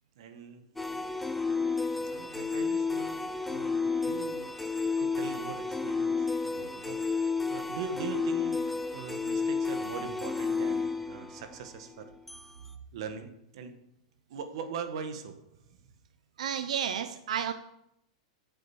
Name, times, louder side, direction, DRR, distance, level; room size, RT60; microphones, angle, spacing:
voice 1, 0.2-0.7 2.0-3.2 3.5-12.1 12.9-13.7 14.3-15.8, right 6 dB, 55° right, 7 dB, 1.6 m, -41 dB
sound 1, 0.8-12.5, left 4 dB, 5° left, 0.5 m, -31 dB
voice 2, 16.4-17.5, right 8 dB, 85° right, 9 dB, 0.8 m, -31 dB
10.5 x 7.9 x 7.2 m, 0.80 s
supercardioid pair, 175°, 4 cm